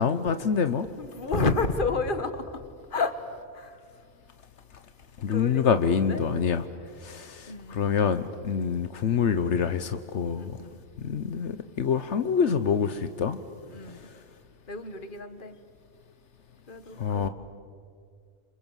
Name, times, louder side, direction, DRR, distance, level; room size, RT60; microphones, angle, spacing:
voice 1, 0.0-0.9 5.2-6.6 7.0-10.6 11.0-13.4 17.0-17.3, left 6 dB, 80° left, 10 dB, 1.2 m, -26 dB
voice 2, 1.0-2.5 2.9-3.1 3.5-3.8 5.3-6.2 7.5-8.0 10.4-10.8 13.7-14.1 14.7-15.6 16.7-17.3, left 3 dB, 45° left, 10 dB, 1.8 m, -30 dB
28.5 x 27.0 x 7.3 m, 2.2 s
omnidirectional pair, 1.2 m